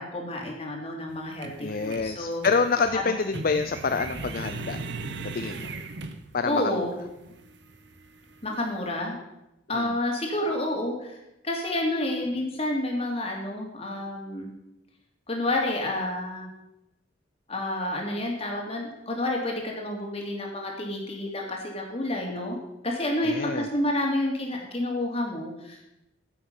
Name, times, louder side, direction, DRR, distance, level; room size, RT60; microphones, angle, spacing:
voice 1, 0.0-2.4 2.9-3.0 6.4-6.9 8.4-9.2 9.7-11.2 11.4-14.5 15.3-16.5 17.5-22.6 22.8-25.8, left 1 dB, 30° left, 0 dB, 2.8 m, -29 dB
sound 1, 1.1-6.6 7.0-8.7, right 3 dB, 60° right, 0.9 m, -38 dB
voice 2, 1.6-4.8 5.2-5.7 6.3-6.9 9.7-10.0 23.2-23.7, left 4 dB, 45° left, 9 dB, 0.5 m, -27 dB
15.0 x 7.8 x 5.5 m, 0.91 s
head